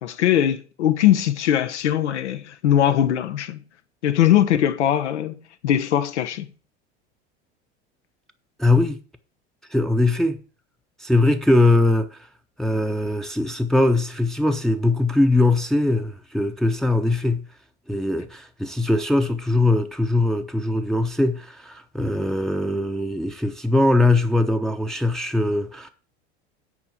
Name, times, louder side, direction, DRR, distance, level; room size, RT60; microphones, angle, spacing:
voice 1, 0.0-3.6 4.0-5.4 5.6-6.5, left 11 dB, 80° left, 1.1 m, -20 dB
voice 2, 8.6-9.0 9.7-10.4 11.0-12.2 12.6-17.5 17.9-25.9, left 2 dB, ahead, 0.8 m, -21 dB
9.6 x 4.7 x 7.1 m
hypercardioid pair, 85°, 34 cm